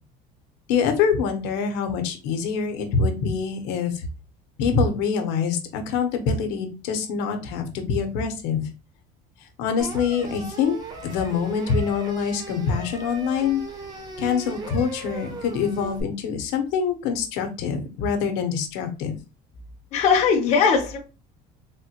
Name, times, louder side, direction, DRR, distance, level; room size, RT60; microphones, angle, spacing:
voice 1, 0.7-4.1 4.6-8.7 9.4-10.7 11.0-13.6 14.2-19.1, left 6 dB, 75° left, 6 dB, 0.7 m, -25 dB
sound 1, 9.8-16.0, right 3 dB, 20° right, 0.5 m, -38 dB
voice 2, 19.9-21.0, left 6 dB, 40° left, 2 dB, 0.6 m, -19 dB
3.5 x 2.1 x 2.8 m, 0.31 s
cardioid pair, 165°, 18 cm